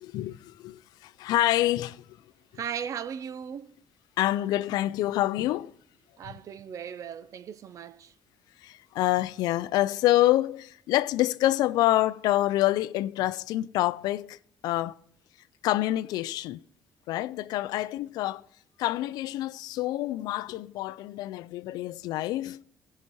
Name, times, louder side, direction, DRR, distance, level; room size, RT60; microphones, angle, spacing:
voice 1, 0.0-2.0 4.2-5.7 8.6-14.4 14.6-15.0 15.6-16.6 17.1-18.5 18.8-22.6, left 15 dB, 85° left, 0.4 m, -27 dB
voice 2, 2.5-3.8 6.2-8.1, right 8 dB, 55° right, 0.6 m, -37 dB
16.0 x 5.8 x 4.5 m
cardioid pair, 95°, 7 cm